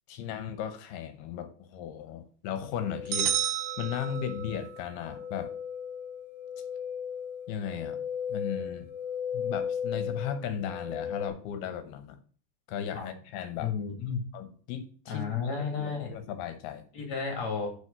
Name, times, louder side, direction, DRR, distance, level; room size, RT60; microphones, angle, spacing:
voice 1, 0.1-3.4 3.8-5.5 7.5-8.0 8.3-8.9 9.3-12.2 12.7-13.7 14.3-15.3 15.5-16.9, left 8 dB, 80° left, 9 dB, 2.8 m, -36 dB
sound 1, 2.8-11.3, left 7 dB, 20° left, 0.9 m, -36 dB
sound 2, 3.1-4.7, right 10 dB, 80° right, 1.7 m, -30 dB
voice 2, 13.6-14.2 15.1-16.1 16.9-17.7, left 6 dB, 45° left, 1 dB, 3.2 m, -32 dB
6.4 x 6.0 x 6.7 m, 0.43 s
omnidirectional pair, 4.7 m